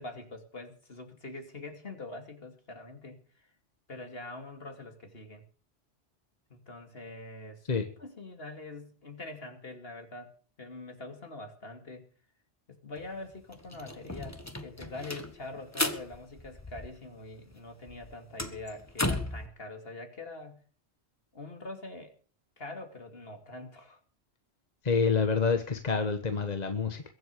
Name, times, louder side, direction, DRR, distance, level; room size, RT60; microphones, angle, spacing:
voice 1, 0.0-3.5 3.9-5.4 6.5-7.6 8.0-10.3 10.6-12.1 12.7-20.6 21.3-22.1 22.6-24.0, left 2 dB, 60° left, 5 dB, 2.9 m, -44 dB
sound 1, 13.0-13.1 13.3-17.3 17.5-19.5, left 1 dB, 15° left, 1.5 m, -35 dB
voice 2, 24.8-27.0, left 5 dB, 40° left, 7 dB, 1.4 m, -27 dB
22.0 x 7.9 x 6.8 m, 0.41 s
omnidirectional pair, 1.1 m